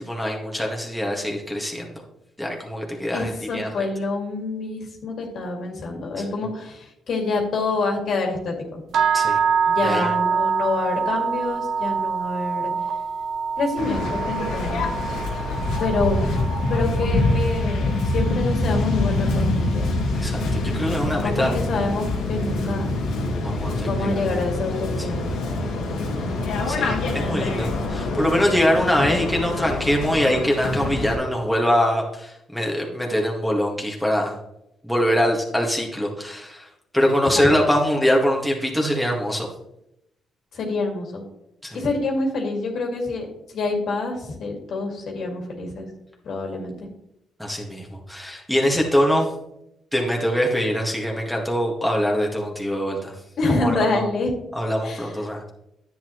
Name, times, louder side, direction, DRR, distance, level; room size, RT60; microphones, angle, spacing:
voice 1, 0.0-1.9 2.4-3.8 9.1-9.4 9.8-10.1 15.1-15.4 20.1-21.5 23.4-24.2 26.7-34.4 34.8-36.7 36.9-39.5 41.6-41.8 47.4-49.3 49.9-53.1 53.6-54.0 54.6-55.4, equal, ahead, -1 dB, 1.9 m, -23 dB
voice 2, 3.1-8.8 9.7-12.7 13.6-14.8 15.8-16.3 16.7-19.9 21.2-22.8 23.8-25.2 27.2-27.8 29.0-29.1 37.2-37.5 40.5-41.2 41.7-43.3 43.5-45.9 46.2-46.9 53.4-54.3 54.8-55.2, left 3 dB, 65° left, 1 dB, 2.2 m, -27 dB
sound 1, 8.9-19.0, right 6 dB, 70° right, 0.7 m, -26 dB
Waves surf, 13.8-31.1, left 2 dB, 90° left, 1.9 m, -25 dB
10.0 x 8.4 x 3.2 m, 0.82 s
cardioid pair, 90°, 0 cm